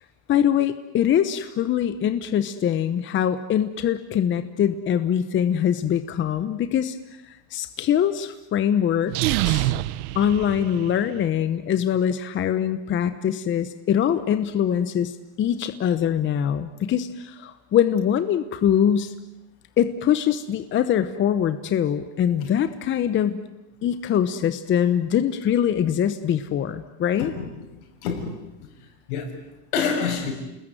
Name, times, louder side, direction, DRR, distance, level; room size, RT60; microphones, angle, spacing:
voice 1, 0.3-7.0 7.5-9.1 9.4-9.7 10.1-15.1 15.4-19.1 19.8-23.4 23.8-27.3, left 9 dB, 25° left, 11 dB, 1.0 m, -23 dB
sound 1, 9.1-11.2, right 16 dB, 75° right, 1.1 m, -26 dB
voice 2, 27.2-28.3 29.1-29.3 29.7-30.3, left 6 dB, 75° left, 4 dB, 7.0 m, -27 dB
29.5 x 20.5 x 9.2 m, 0.95 s
supercardioid pair, 150°, 45 cm